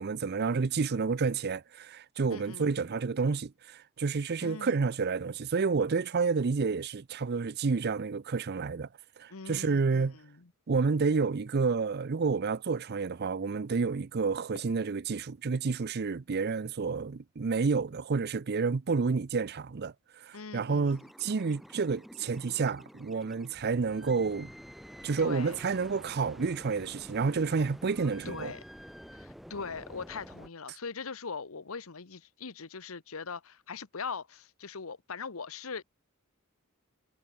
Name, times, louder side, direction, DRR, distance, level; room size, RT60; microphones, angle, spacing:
voice 1, 0.0-8.9 9.2-10.2 10.7-19.9 20.2-24.5 25.0-28.5, right 4 dB, 50° right, 0.5 m, -30 dB
voice 2, 2.3-2.9 4.4-4.8 9.3-10.5 20.3-21.1 25.2-25.6 28.2-28.6 29.1-35.8, left 5 dB, 80° left, 1.1 m, -41 dB
sound 1, 20.9-30.5, equal, ahead, 4.4 m, -49 dB
head